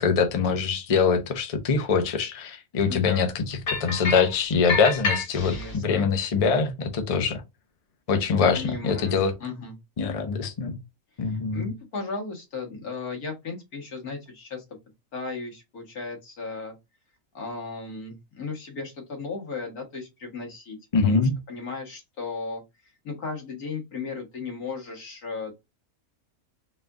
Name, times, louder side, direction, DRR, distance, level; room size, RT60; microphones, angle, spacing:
voice 1, 0.0-5.5 5.8-7.4 8.1-9.3 10.0-10.8 11.2-11.7 20.9-21.4, left 5 dB, 35° left, 0.5 m, -23 dB
voice 2, 2.9-3.3 5.3-6.1 8.5-9.7 11.2-14.6 15.1-16.8 17.3-20.8 21.0-21.2 21.5-22.6 23.0-25.5, left 4 dB, 90° left, 1.9 m, -35 dB
sound 1, 3.7-4.3 4.7-5.8, left 3 dB, 75° left, 1.6 m, -28 dB
4.1 x 2.3 x 3.6 m
omnidirectional pair, 1.5 m